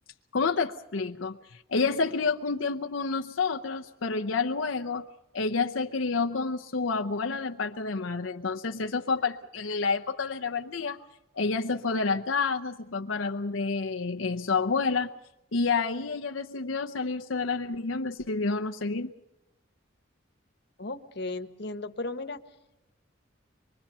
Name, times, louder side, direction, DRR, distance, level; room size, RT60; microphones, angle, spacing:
voice 1, 0.3-5.0 5.3-11.0 11.3-15.1 15.5-19.1, left 4 dB, 85° left, 5 dB, 0.8 m, -29 dB
voice 2, 20.8-22.4, left 2 dB, 60° left, 9 dB, 1.3 m, -35 dB
24.5 x 23.5 x 5.6 m, 0.92 s
head